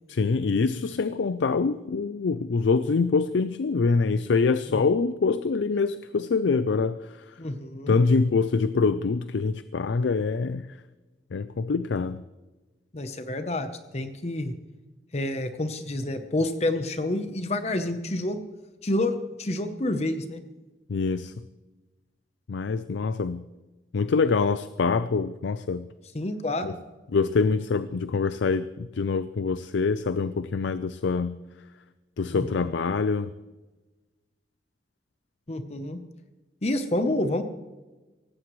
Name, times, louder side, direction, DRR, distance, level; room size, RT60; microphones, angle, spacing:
voice 1, 0.1-7.2 7.9-10.7 11.3-12.2 20.9-21.3 22.5-23.4 23.9-25.9 26.6-26.7 27.1-31.4 32.2-33.3, left 4 dB, 90° left, 13 dB, 0.4 m, -25 dB
voice 2, 7.4-8.0 12.9-13.7 13.9-14.5 15.1-18.5 18.8-20.4 26.1-26.8 32.3-32.6 35.5-36.0 36.6-37.4, left 1 dB, 35° left, 8 dB, 0.8 m, -28 dB
17.5 x 16.0 x 3.1 m, 1.2 s
head